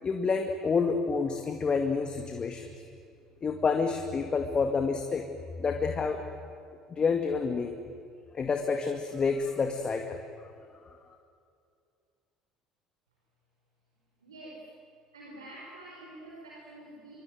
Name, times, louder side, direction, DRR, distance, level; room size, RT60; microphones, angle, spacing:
voice 1, 0.0-2.7 3.4-5.3 5.6-6.2 6.9-7.8 8.3-10.2, left 5 dB, 35° left, 4 dB, 2.3 m, -28 dB
voice 2, 14.2-14.6 15.1-17.2, right 1 dB, 85° right, -3 dB, 4.7 m, -47 dB
25.0 x 24.5 x 9.3 m, 2.4 s
hypercardioid pair, 65°, 3 cm